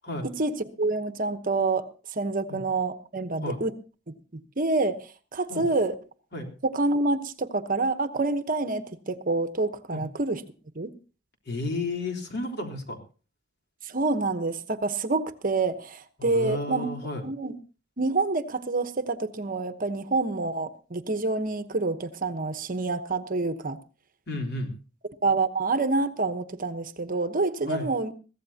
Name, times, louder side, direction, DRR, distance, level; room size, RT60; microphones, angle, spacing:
voice 1, 0.2-3.7 4.3-5.9 6.6-10.4 10.7-10.9 13.8-16.9 17.2-17.5 18.0-23.8 25.2-28.1, right 3 dB, 45° right, 11 dB, 1.0 m, -27 dB
voice 2, 11.5-13.0 16.2-17.2 24.3-24.7 27.7-27.9, left 2 dB, 60° left, 4 dB, 3.5 m, -32 dB
22.5 x 15.5 x 2.8 m, 0.35 s
head